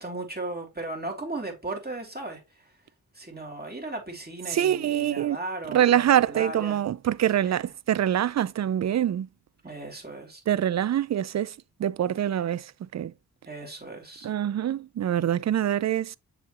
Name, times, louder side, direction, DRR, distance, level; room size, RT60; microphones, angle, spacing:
voice 1, 0.0-2.7 3.1-6.8 7.4-7.6 9.6-10.4 13.4-14.3, right 2 dB, 25° right, 3.1 m, -36 dB
voice 2, 4.5-5.4 5.7-9.3 10.5-11.5 11.8-13.1 14.2-16.2, right 11 dB, 45° right, 0.4 m, -25 dB
6.7 x 4.8 x 3.0 m
cardioid pair, 45°, 38 cm